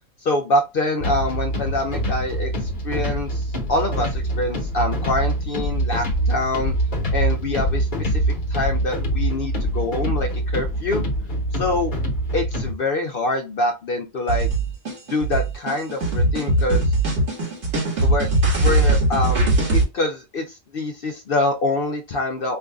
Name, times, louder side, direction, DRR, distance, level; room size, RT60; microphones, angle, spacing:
voice 1, 0.2-3.4 3.7-6.7 7.1-8.1 8.5-11.0 11.6-11.9 12.3-14.5 15.1-16.9 18.0-18.3 18.6-22.6, left 2 dB, 60° left, 6 dB, 0.6 m, -25 dB
sound 1, 1.0-12.7, right 1 dB, 40° left, 1.1 m, -24 dB
sound 2, 14.3-19.8, right 2 dB, 50° right, 1.8 m, -20 dB
5.4 x 2.5 x 2.2 m, 0.25 s
omnidirectional pair, 1.5 m